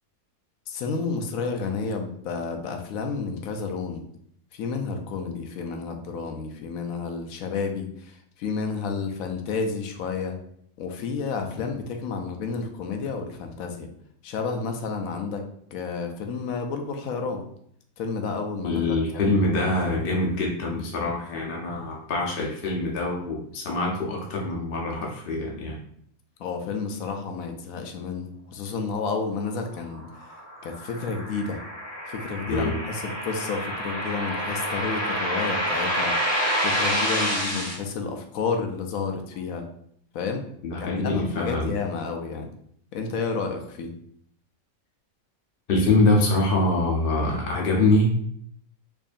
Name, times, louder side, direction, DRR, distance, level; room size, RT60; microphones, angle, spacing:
voice 1, 0.7-4.0 4.5-10.4 10.8-13.9 14.2-15.4 15.7-17.4 18.0-19.4 26.4-30.3 30.6-31.6 32.1-39.6 40.1-40.4 40.8-42.5 42.9-43.9, left 4 dB, 75° left, 4 dB, 1.0 m, -31 dB
voice 2, 18.6-25.8 32.5-32.8 36.9-37.6 40.6-41.7 45.7-48.2, left 2 dB, 50° left, -2 dB, 0.8 m, -24 dB
sound 1, 29.9-37.7, equal, 10° left, 0.9 m, -28 dB
4.6 x 2.7 x 2.5 m, 0.68 s
omnidirectional pair, 1.5 m